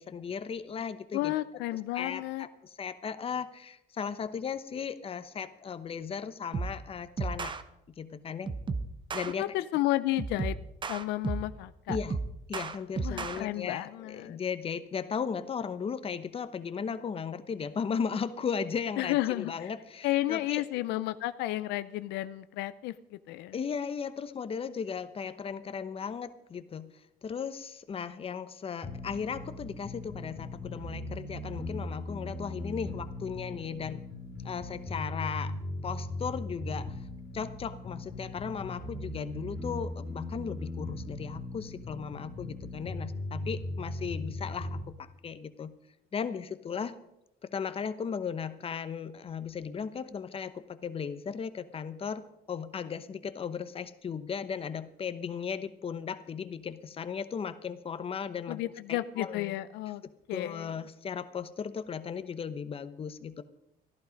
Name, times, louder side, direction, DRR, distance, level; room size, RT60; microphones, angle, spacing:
voice 1, 0.0-1.3 1.9-2.5 2.8-7.5 8.0-8.5 9.1-9.6 11.9-12.2 12.5-20.6 23.5-26.9 27.2-34.1 34.4-35.5 35.8-36.9 37.3-45.7 46.1-47.0 47.4-59.6 60.3-63.4, left 6 dB, 35° left, 12 dB, 0.9 m, -36 dB
voice 2, 1.1-2.5 9.4-10.6 10.9-12.0 13.0-14.4 19.0-19.7 20.0-22.9 23.3-23.6 58.5-60.0 60.3-60.7, left 16 dB, 90° left, 14 dB, 0.5 m, -32 dB
sound 1, 6.5-6.8 7.2-7.6 8.5-9.3 10.2-11.6 11.9-13.4, right 4 dB, 30° right, 0.9 m, -34 dB
sound 2, 28.8-44.8, left 2 dB, 5° right, 2.9 m, -39 dB
14.0 x 11.5 x 5.2 m, 0.83 s
cardioid pair, 110°, 17 cm